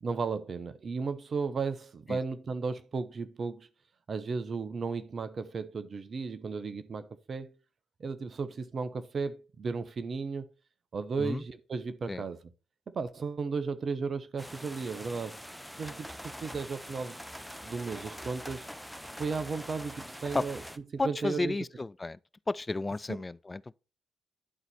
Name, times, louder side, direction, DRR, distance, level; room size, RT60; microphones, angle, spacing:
voice 1, 0.0-3.7 4.1-7.6 8.0-10.5 10.9-12.4 12.9-15.4 15.8-17.2 17.6-18.7 19.1-20.6 20.9-21.6 23.1-23.2, right 4 dB, 50° right, 0.8 m, -35 dB
sound 1, 14.4-20.8, equal, ahead, 0.8 m, -44 dB
voice 2, 21.0-22.2 22.5-23.8, left 2 dB, 25° left, 0.4 m, -32 dB
11.0 x 4.1 x 4.3 m
hypercardioid pair, 45°, 0 cm